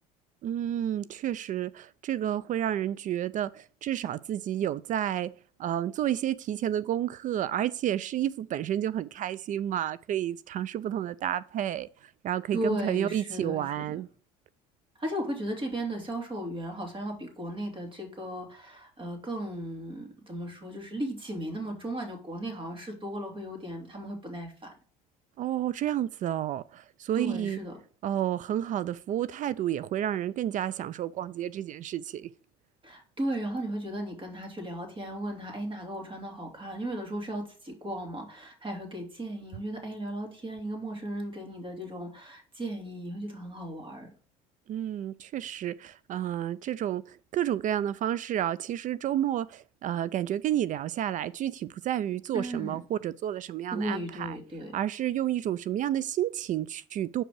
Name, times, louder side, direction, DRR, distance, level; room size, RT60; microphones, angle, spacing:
voice 1, 0.4-5.3 5.6-14.1 25.4-27.6 28.0-32.3 44.7-54.4 54.7-57.2, right 11 dB, 45° right, 0.4 m, -30 dB
voice 2, 12.5-14.0 15.0-24.7 27.1-27.8 32.8-44.1 52.3-52.8 53.7-54.7, right 1 dB, 30° right, 2.8 m, -36 dB
6.1 x 5.1 x 4.7 m
hypercardioid pair, 75°, 18 cm